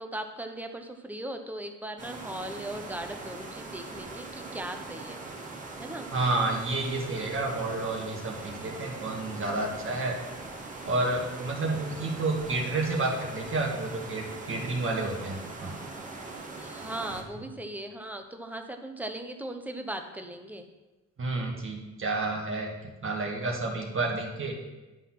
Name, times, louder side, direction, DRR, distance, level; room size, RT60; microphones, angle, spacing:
voice 1, 0.0-5.2 5.8-6.1 16.6-20.6, right 1 dB, 5° right, 5 dB, 1.0 m, -38 dB
sound 1, 2.0-17.2, right 3 dB, 25° right, 1.7 m, -41 dB
voice 2, 6.1-10.1 10.8-15.8 17.4-17.5 21.2-24.6, right 2 dB, 45° right, -1 dB, 1.7 m, -30 dB
11.0 x 4.1 x 6.0 m, 1.1 s
cardioid pair, 90°, 30 cm